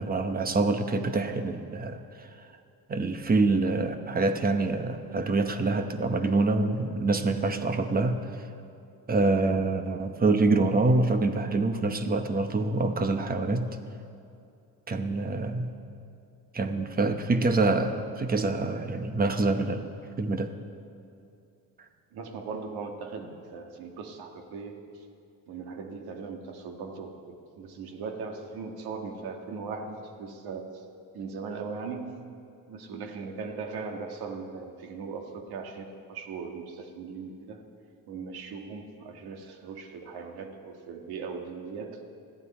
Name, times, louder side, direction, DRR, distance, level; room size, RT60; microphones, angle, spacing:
voice 1, 0.0-2.0 2.9-8.2 9.1-13.8 14.9-15.7 16.5-19.9 20.2-20.5, right 3 dB, 25° right, 7 dB, 1.0 m, -26 dB
voice 2, 22.1-24.8 25.5-30.7 31.1-32.3 32.7-37.6 38.1-42.0, right 5 dB, 90° right, 4 dB, 1.8 m, -39 dB
20.5 x 14.0 x 4.3 m, 2.6 s
cardioid pair, 140°, 37 cm